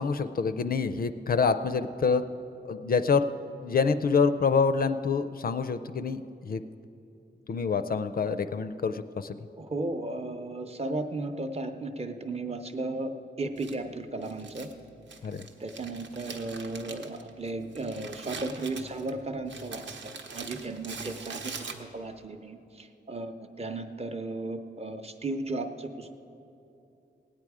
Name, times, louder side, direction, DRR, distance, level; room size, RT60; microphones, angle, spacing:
voice 1, 0.0-2.2 2.7-3.3 3.6-6.6 7.5-9.4 15.2-15.5, left 5 dB, 50° left, 10 dB, 0.4 m, -26 dB
voice 2, 9.6-14.7 15.6-26.1, right 2 dB, 35° right, 6 dB, 0.7 m, -35 dB
Crumpling crinkling, 13.6-22.2, right 4 dB, 80° right, 0.9 m, -43 dB
17.5 x 9.0 x 4.8 m, 2.7 s
wide cardioid pair, 170°, 19 cm